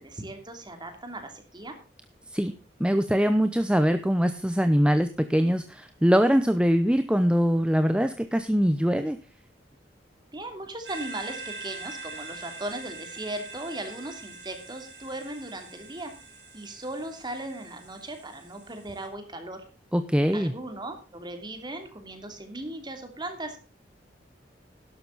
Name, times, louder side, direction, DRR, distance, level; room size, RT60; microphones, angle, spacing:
voice 1, 0.0-1.8 10.3-16.1 16.5-19.6 20.3-23.6, right 1 dB, 25° right, 6 dB, 2.8 m, -37 dB
voice 2, 2.8-9.2 19.9-20.5, equal, 5° right, 9 dB, 0.7 m, -23 dB
sound 1, 10.9-19.0, right 3 dB, 75° right, 5.8 m, -43 dB
12.0 x 12.0 x 4.0 m, 0.34 s
head